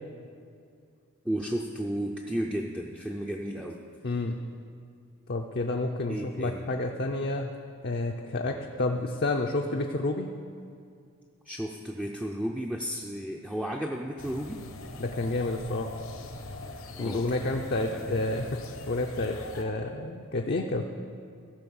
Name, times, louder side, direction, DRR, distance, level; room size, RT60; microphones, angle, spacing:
voice 1, 1.2-3.8 6.1-6.7 8.4-8.6 11.5-14.6 16.9-18.2, right 1 dB, 5° right, -2 dB, 0.4 m, -34 dB
voice 2, 4.0-4.4 5.3-7.5 7.8-10.3 15.0-15.9 17.0-20.8, left 2 dB, 45° left, 2 dB, 0.5 m, -30 dB
sound 1, 14.2-19.6, left 2 dB, 70° left, 0.9 m, -42 dB
15.0 x 5.4 x 7.0 m, 2.3 s
head